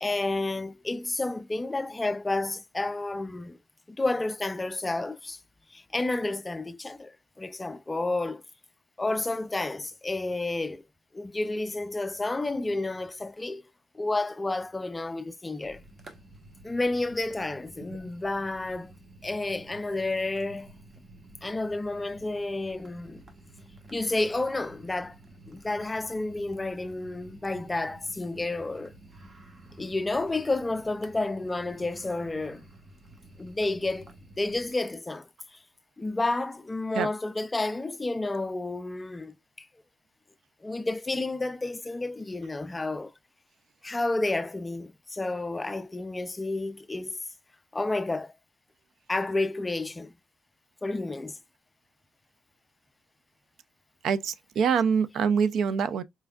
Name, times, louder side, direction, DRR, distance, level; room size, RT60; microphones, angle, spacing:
voice 1, 0.0-3.6 3.9-5.4 5.7-8.4 9.0-10.8 11.1-13.6 13.9-15.8 16.6-18.9 19.2-20.7 21.4-23.2 23.9-25.2 25.5-28.9 29.8-32.7 33.4-34.1 34.4-35.3 36.0-39.7 40.6-43.1 43.8-47.2 47.7-48.3 49.1-50.1 50.8-51.4, left 2 dB, 20° left, 0.3 m, -30 dB
sound 1, 15.6-34.7, right 1 dB, 40° right, 1.2 m, -51 dB
voice 2, 54.0-56.0, right 6 dB, 70° right, 0.4 m, -25 dB
4.4 x 3.4 x 2.2 m
cardioid pair, 90°, 0 cm